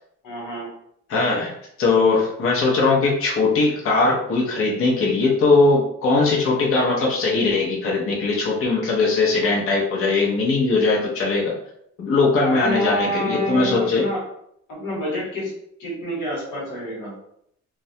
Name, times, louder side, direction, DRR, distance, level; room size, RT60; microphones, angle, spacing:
voice 1, 0.2-0.7 12.4-14.2 14.7-15.5 15.8-17.1, left 1 dB, 85° left, -4 dB, 1.2 m, -27 dB
voice 2, 1.1-1.5 1.8-11.5 12.0-14.0, left 3 dB, 45° left, -3 dB, 0.6 m, -20 dB
2.2 x 2.1 x 2.7 m, 0.72 s
cardioid pair, 90°, 30 cm